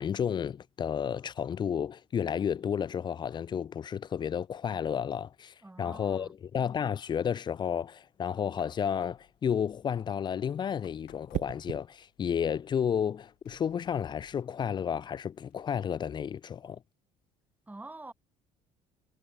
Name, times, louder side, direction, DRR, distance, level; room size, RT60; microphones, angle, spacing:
voice 1, 0.0-16.8, left 8 dB, 25° left, 0.4 m, -32 dB
voice 2, 5.6-6.3 17.7-18.1, right 2 dB, 10° right, 1.6 m, -46 dB
sound 1, 8.5-16.0, left 18 dB, 55° left, 2.7 m, -63 dB
sound 2, 11.3-11.9 13.8-14.1, right 14 dB, 40° right, 0.5 m, -37 dB
figure-of-eight pair, 55°, 19 cm